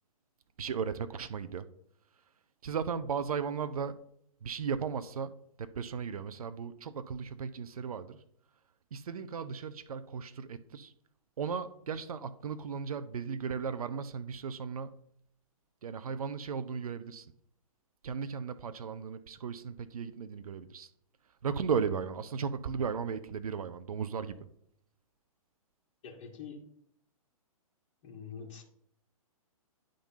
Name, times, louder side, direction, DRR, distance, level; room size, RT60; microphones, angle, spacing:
voice 1, 0.6-1.7 2.1-2.2 2.6-4.0 4.4-8.2 8.9-10.9 11.4-15.0 15.8-17.3 18.0-20.9 21.4-24.5, right 6 dB, 75° right, 0.6 m, -36 dB
voice 2, 26.0-26.6 28.0-28.6, left 6 dB, 50° left, 1.6 m, -45 dB
10.0 x 3.8 x 5.5 m
hypercardioid pair, 135°, 19 cm